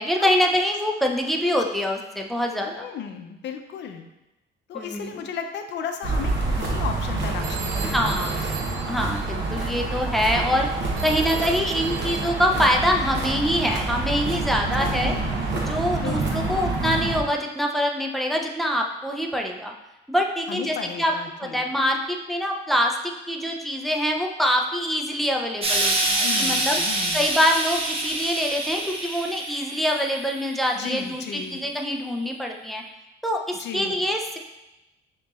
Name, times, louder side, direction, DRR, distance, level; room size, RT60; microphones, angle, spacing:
voice 1, 0.0-2.9 4.7-5.2 7.9-8.4 8.9-10.7 11.0-15.1 15.6-19.7 20.1-21.1 21.4-26.8 27.1-32.8 33.2-34.4, equal, ahead, 1 dB, 0.4 m, -25 dB
voice 2, 2.7-4.1 4.7-8.2 14.8-15.4 16.0-16.7 20.5-21.6 26.2-27.2 30.7-31.6 33.5-34.0, left 7 dB, 60° left, 6 dB, 0.5 m, -35 dB
sound 1, 6.0-17.2, right 3 dB, 60° right, 0.9 m, -27 dB
Telephone, 7.4-9.8 11.0-12.7, right 5 dB, 85° right, 0.6 m, -37 dB
Explosion, 25.6-30.9 31.8-31.9, right 2 dB, 30° right, 0.8 m, -26 dB
6.5 x 2.9 x 2.4 m, 0.99 s
cardioid pair, 125°, 21 cm